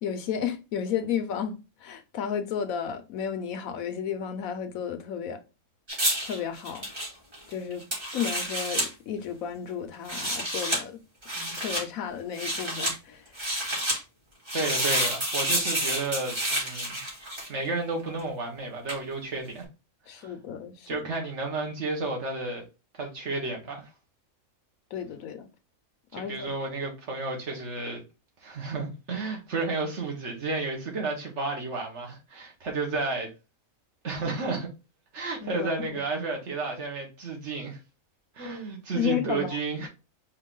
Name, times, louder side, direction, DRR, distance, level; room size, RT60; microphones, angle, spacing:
voice 1, 0.0-5.4 6.2-6.9 7.5-7.8 8.1-10.9 11.3-13.2 20.1-21.0 24.9-25.5 26.1-26.5 35.4-36.0 38.9-39.6, left 8 dB, 75° left, 1.1 m, -33 dB
sound 1, 5.9-8.9 9.9-10.8 11.2-11.8 12.3-12.9 13.3-14.0 14.5-17.7 18.9-19.0, right 1 dB, 40° right, 2.6 m, -29 dB
voice 2, 14.5-17.0 17.5-19.7 20.1-20.3 20.9-22.7 23.0-23.9 26.1-28.0 28.4-33.3 34.0-34.7 35.1-37.8 38.4-39.9, right 3 dB, 55° right, 1.6 m, -32 dB
4.7 x 3.0 x 3.7 m
omnidirectional pair, 1.5 m